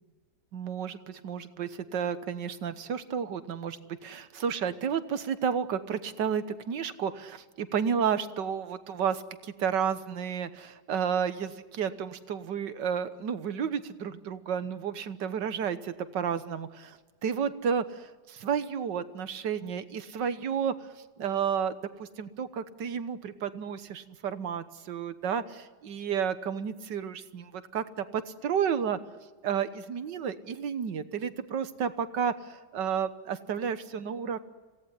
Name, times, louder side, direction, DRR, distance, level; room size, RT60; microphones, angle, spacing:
voice 1, 0.5-20.7 21.2-29.0 29.4-34.4, right 7 dB, 80° right, 12 dB, 1.8 m, -32 dB
26.5 x 17.5 x 9.8 m, 1.4 s
omnidirectional pair, 1.9 m